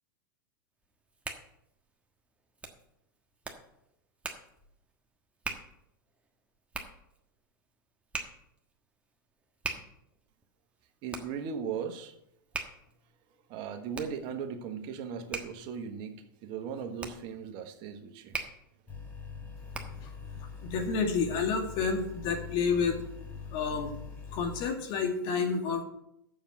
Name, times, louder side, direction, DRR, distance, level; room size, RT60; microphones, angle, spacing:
Hands, 0.8-20.1, right 3 dB, 10° right, 1.4 m, -44 dB
voice 1, 11.0-12.1 13.5-18.3, right 6 dB, 45° right, 7 dB, 1.3 m, -38 dB
sound 1, 18.9-24.7, left 6 dB, 15° left, 3.1 m, -43 dB
voice 2, 20.6-23.0 23.5-24.0 24.3-25.8, left 5 dB, 45° left, 4 dB, 2.1 m, -29 dB
7.2 x 7.1 x 8.2 m, 0.79 s
hypercardioid pair, 110°, 11 cm